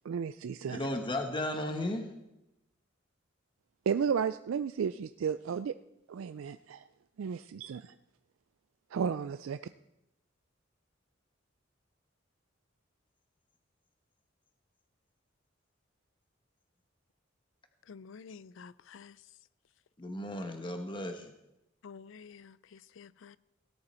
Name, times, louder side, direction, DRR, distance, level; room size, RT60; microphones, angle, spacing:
voice 1, 0.0-0.9 3.9-5.7 6.1-6.8 7.2-7.9 8.9-9.6, right 7 dB, 85° right, 0.4 m, -33 dB
voice 2, 0.7-2.1 20.0-21.3, left 1 dB, 25° left, 1.0 m, -35 dB
voice 3, 17.9-19.2 21.8-23.4, left 5 dB, 70° left, 0.4 m, -50 dB
17.5 x 10.5 x 4.3 m
head